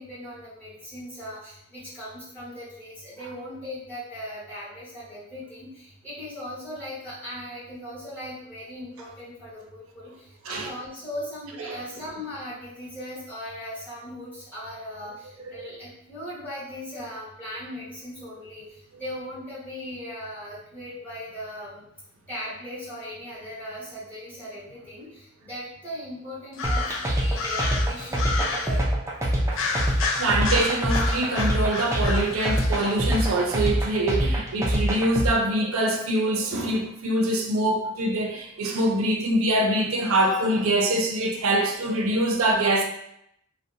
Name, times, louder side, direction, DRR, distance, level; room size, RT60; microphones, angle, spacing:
voice 1, 0.0-21.8 22.3-28.8, equal, 10° left, 1.1 m, -38 dB
sound 1, 26.5-28.8 29.5-33.5, left 4 dB, 70° left, 0.3 m, -31 dB
sound 2, 26.6-35.3, equal, 15° right, 0.3 m, -24 dB
voice 2, 30.2-42.8, right 1 dB, 80° right, 0.5 m, -24 dB
2.6 x 2.0 x 2.5 m
head